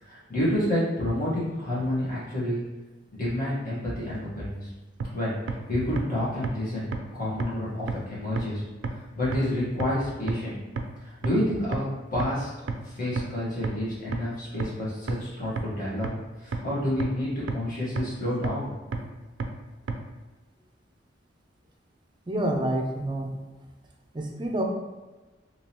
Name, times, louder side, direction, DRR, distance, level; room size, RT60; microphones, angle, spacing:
voice 1, 0.0-2.6 3.1-4.7 5.1-8.6 8.9-10.6 11.0-12.5 12.8-16.1 16.4-18.7, left 1 dB, 50° left, -9 dB, 1.4 m, -29 dB
sound 1, 5.0-5.1 5.5-5.6 6.0-6.1 6.4-6.5 6.9-7.0 7.4-7.5 7.9-8.0 8.4-8.5 8.8-8.9 9.3-9.4 9.8-9.9 10.3-10.4 10.8-10.9 11.2-11.3 11.7-11.8 12.2-12.3 12.7-12.8 13.2-13.3 13.6-13.7 14.1-14.2 14.6-14.7 15.1-15.2 15.6-15.7 16.0-16.1 16.5-16.6 17.0-17.1 17.5-17.6 18.0-18.1 18.4-18.5 18.9-19.0 19.4-19.5 19.9-20.0, right 5 dB, 85° right, 0.4 m, -29 dB
voice 2, 22.3-23.3 24.1-24.6, right 1 dB, 25° right, 1 dB, 0.5 m, -28 dB
3.6 x 2.9 x 2.9 m, 1.2 s
head